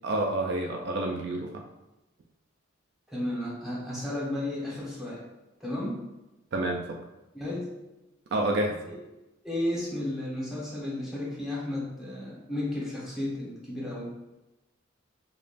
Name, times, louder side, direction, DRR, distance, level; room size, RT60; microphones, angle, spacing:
voice 1, 0.0-1.5 6.5-7.0 8.3-8.8, right 1 dB, 55° right, 1 dB, 0.4 m, -28 dB
voice 2, 3.1-5.2 5.6-6.1 7.3-7.7 9.4-14.1, left 1 dB, ahead, -6 dB, 1.0 m, -33 dB
5.0 x 2.3 x 2.5 m, 1.0 s
head